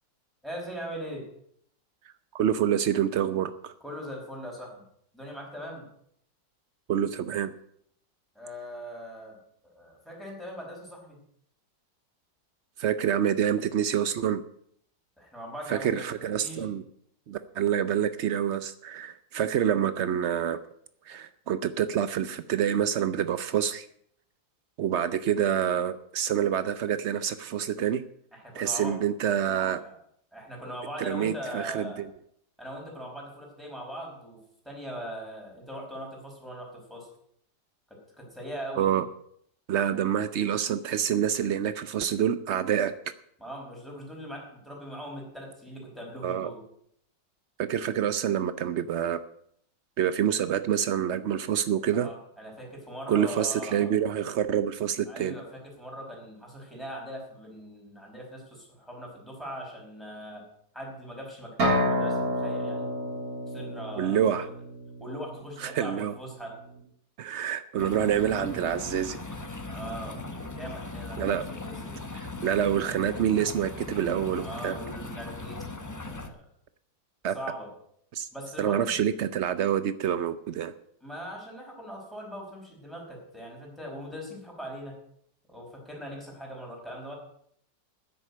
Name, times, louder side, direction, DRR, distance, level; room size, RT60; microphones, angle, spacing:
voice 1, 0.4-1.2 3.8-4.8 5.1-5.9 8.3-9.4 9.6-11.2 15.2-16.7 28.3-29.0 29.7-30.0 30.3-32.0 32.6-37.1 37.9-39.0 43.4-46.6 51.9-53.9 55.1-60.5 60.7-62.9 63.5-64.5 65.0-66.6 69.7-70.2 70.5-72.0 74.3-76.4 77.3-77.7 78.3-78.9 81.0-85.0 85.5-87.2, equal, ahead, -2 dB, 4.9 m, -40 dB
voice 2, 2.3-3.7 6.9-7.5 12.8-14.4 15.7-16.8 17.3-20.6 21.1-23.9 24.8-28.0 28.5-29.8 31.0-32.1 38.8-39.1 39.7-42.9 46.2-46.5 47.6-49.2 50.0-52.1 53.1-55.4 64.0-64.5 65.6-66.1 67.2-69.2 71.2-71.4 72.2-74.8 77.2-77.3 78.1-78.3 78.6-80.7, right 9 dB, 90° right, 13 dB, 0.6 m, -27 dB
sound 1, 61.6-65.3, equal, 50° right, 3.9 m, -29 dB
smal fontain in Vienna, 67.8-76.3, left 2 dB, 15° left, 0.6 m, -39 dB
10.0 x 8.0 x 9.6 m, 0.68 s
omnidirectional pair, 2.0 m